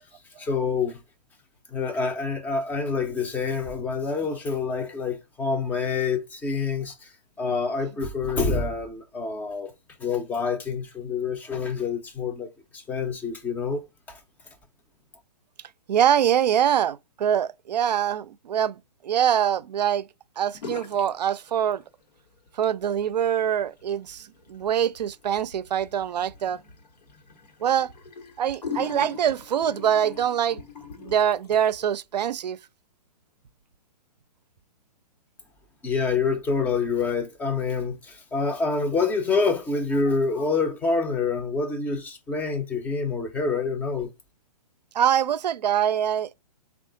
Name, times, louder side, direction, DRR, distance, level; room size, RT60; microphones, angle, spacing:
voice 1, 0.4-1.0 1.7-9.7 10.0-12.5 12.7-14.2 35.8-44.1, left 4 dB, 10° left, 0.4 m, -27 dB
voice 2, 15.9-20.1 20.4-21.8 22.5-26.6 27.6-27.9 28.4-30.6 31.0-32.6 44.9-46.3, right 9 dB, 85° right, 0.4 m, -24 dB
sound 1, 20.5-21.2 21.4-22.1 22.5-31.9, left 6 dB, 85° left, 1.2 m, -41 dB
3.6 x 2.3 x 3.7 m
hypercardioid pair, 145°, 21 cm